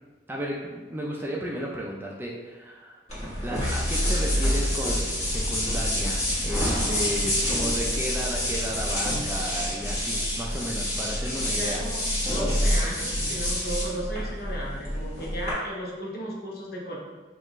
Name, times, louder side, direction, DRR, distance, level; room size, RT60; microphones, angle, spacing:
voice 1, 0.3-3.0 3.4-11.8, equal, 10° right, -3 dB, 0.3 m, -34 dB
sound 1, 3.1-15.5, equal, 35° left, 1.3 m, -27 dB
voice 2, 11.4-17.0, equal, 50° left, -3 dB, 0.9 m, -35 dB
5.3 x 2.4 x 3.0 m, 1.3 s
head